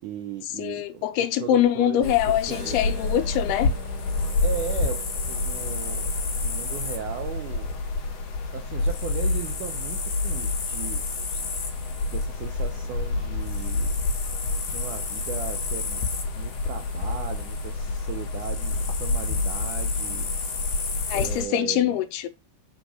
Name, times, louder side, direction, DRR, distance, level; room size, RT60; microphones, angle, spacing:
voice 1, 0.0-2.8 4.4-6.1 6.4-7.8 8.5-10.0 10.2-11.0 12.1-13.9 14.7-16.0 16.4-20.3 21.1-22.0, right 9 dB, 85° right, 1.8 m, -37 dB
voice 2, 0.6-3.7 21.1-22.3, left 11 dB, 85° left, 2.8 m, -24 dB
sound 1, 2.0-21.4, left 3 dB, 60° left, 1.9 m, -28 dB
Keyboard (musical), 2.5-8.3, right 4 dB, 30° right, 1.4 m, -47 dB
5.1 x 4.6 x 6.1 m
omnidirectional pair, 4.5 m